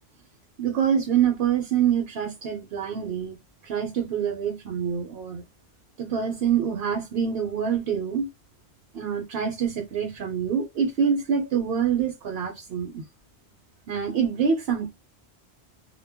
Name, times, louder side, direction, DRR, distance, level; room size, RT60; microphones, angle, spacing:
voice 1, 0.6-3.4 3.6-5.4 6.0-8.3 8.9-13.0 13.9-14.9, right 7 dB, 70° right, 0.8 m, -26 dB
2.2 x 2.1 x 3.4 m
omnidirectional pair, 1.1 m